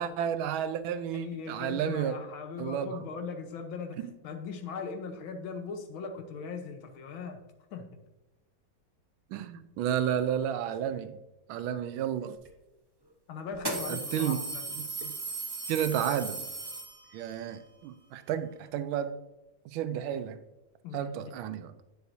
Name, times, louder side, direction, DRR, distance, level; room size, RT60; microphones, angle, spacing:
voice 1, 0.0-2.2 2.6-2.9 4.0-4.1 9.3-11.2 11.5-12.4 13.9-14.4 14.8-15.1 15.7-16.5 17.1-19.1 19.7-20.4 20.9-21.7, right 9 dB, 85° right, 12 dB, 1.4 m, -32 dB
voice 2, 1.1-7.4 7.7-7.9 13.3-14.7 20.8-21.3, left 5 dB, 90° left, 6 dB, 1.7 m, -39 dB
sound 1, 12.4-12.5 13.5-17.3, right 3 dB, 30° right, 0.4 m, -37 dB
9.1 x 6.8 x 2.7 m, 1.0 s
omnidirectional pair, 2.2 m